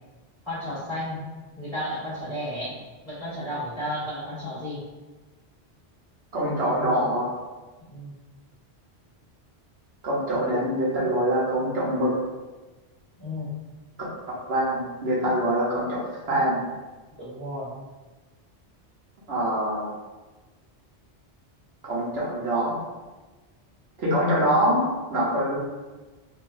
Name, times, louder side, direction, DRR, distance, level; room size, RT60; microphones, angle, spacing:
voice 1, 0.4-1.2 1.6-2.8 3.0-4.8 7.8-8.1 13.2-13.5 17.2-17.7, equal, 25° left, -10 dB, 1.3 m, -33 dB
voice 2, 6.3-7.3 10.0-12.1 14.0-16.6 19.3-19.9 21.8-22.8 24.0-25.6, right 1 dB, 70° right, -5 dB, 1.1 m, -24 dB
3.7 x 2.8 x 2.5 m, 1.2 s
omnidirectional pair, 1.1 m